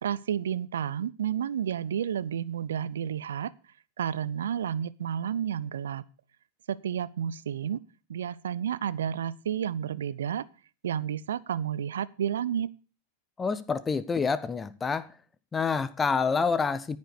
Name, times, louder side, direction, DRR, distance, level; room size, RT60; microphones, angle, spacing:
voice 1, 0.0-3.5 4.0-6.0 6.7-7.8 8.1-10.5 10.8-12.7, right 9 dB, 65° right, 0.6 m, -31 dB
voice 2, 13.4-15.1 15.5-17.0, left 5 dB, 15° left, 0.6 m, -27 dB
14.0 x 5.3 x 6.7 m
figure-of-eight pair, 90°, 0 cm